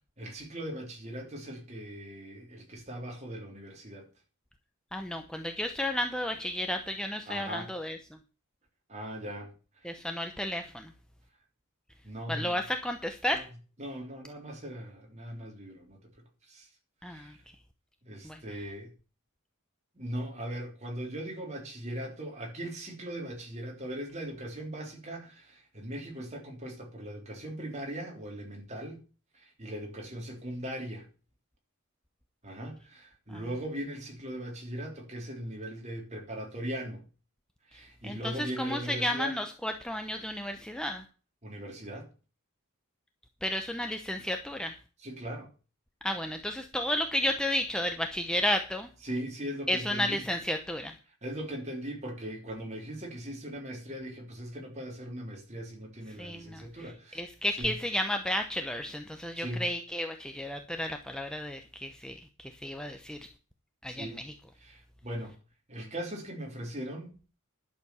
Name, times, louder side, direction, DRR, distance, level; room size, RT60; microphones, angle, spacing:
voice 1, 0.2-4.1 7.3-7.7 8.9-9.9 12.0-12.7 13.3-13.4 13.8-16.1 16.4-16.7 17.0-17.4 18.0-18.9 19.9-29.0 29.3-31.1 32.4-37.1 37.7-39.4 41.4-42.1 45.0-45.5 49.0-50.2 51.2-57.2 57.5-57.8 59.3-59.7 63.9-64.2 64.6-65.4 65.7-67.2, right 1 dB, 30° right, 3.4 m, -39 dB
voice 2, 4.9-8.0 9.8-10.9 12.3-13.5 17.0-17.3 18.2-18.4 33.3-33.4 38.0-38.2 38.6-41.0 43.4-44.8 46.0-48.9 49.7-50.9 56.2-56.7 57.1-63.3 63.8-64.2, left 1 dB, 5° left, 0.8 m, -32 dB
11.5 x 6.9 x 7.0 m
head